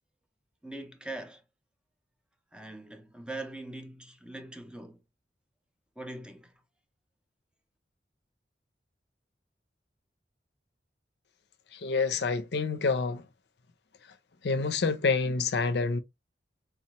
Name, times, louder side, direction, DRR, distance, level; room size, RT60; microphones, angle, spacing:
voice 1, 0.6-1.4 2.5-5.0 6.0-6.5, right 2 dB, 5° right, 0.5 m, -42 dB
voice 2, 11.7-13.3 14.4-16.0, left 4 dB, 65° left, 0.5 m, -27 dB
3.7 x 2.9 x 2.9 m
head